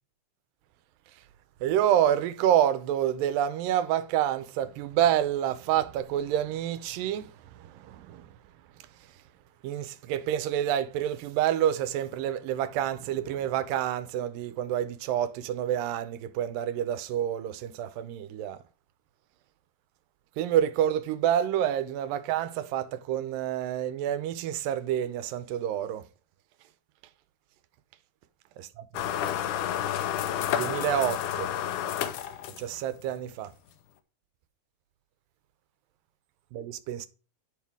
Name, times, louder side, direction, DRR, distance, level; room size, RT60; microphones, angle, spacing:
voice 1, 1.6-8.4 9.6-18.6 20.4-26.1 30.5-31.5 32.6-33.5 36.5-37.1, right 11 dB, 85° right, 2.4 m, -28 dB
sound 1, 28.9-32.9, left 10 dB, 80° left, 2.1 m, -30 dB
10.5 x 4.6 x 3.5 m
omnidirectional pair, 3.9 m